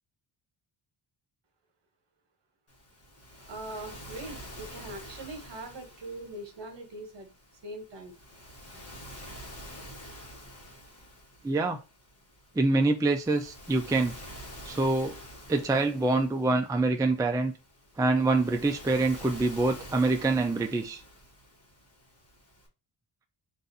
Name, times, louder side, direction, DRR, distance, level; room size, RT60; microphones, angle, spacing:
Waves surf, 2.7-22.7, equal, 30° left, 1.3 m, -48 dB
voice 1, 3.5-7.3 7.6-8.1, right 2 dB, 60° right, 1.3 m, -41 dB
voice 2, 11.4-11.8 12.6-14.1 14.7-15.2 15.5-17.5 18.0-21.0, right 2 dB, 10° right, 0.4 m, -25 dB
4.0 x 2.6 x 4.0 m
wide cardioid pair, 125°, 47 cm